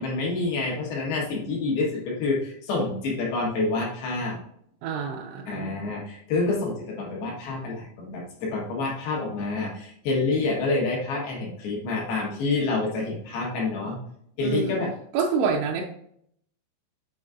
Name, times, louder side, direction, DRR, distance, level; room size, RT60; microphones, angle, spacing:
voice 1, 0.0-4.4 5.5-14.0 14.4-14.9, left 3 dB, 70° left, -2 dB, 3.1 m, -27 dB
voice 2, 4.8-5.8 14.4-14.7 15.1-15.8, right 5 dB, 80° right, -2 dB, 2.7 m, -27 dB
7.7 x 5.1 x 2.4 m, 0.68 s
omnidirectional pair, 5.1 m